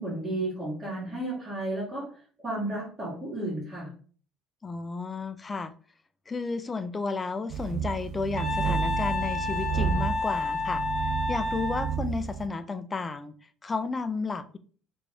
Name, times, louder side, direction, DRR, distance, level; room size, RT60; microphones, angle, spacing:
voice 1, 0.0-2.1 2.4-3.9, right 1 dB, 30° right, -9 dB, 1.6 m, -33 dB
voice 2, 4.6-5.7 6.3-10.8 11.3-13.4 13.6-14.6, left 4 dB, 20° left, 11 dB, 0.3 m, -32 dB
sound 1, 7.5-12.5, right 7 dB, 60° right, 0.3 m, -31 dB
Wind instrument woodwind instrument, 8.4-12.0, left 3 dB, 5° left, 1.0 m, -30 dB
3.3 x 2.5 x 3.4 m, 0.42 s
cardioid pair, 120°, 0 cm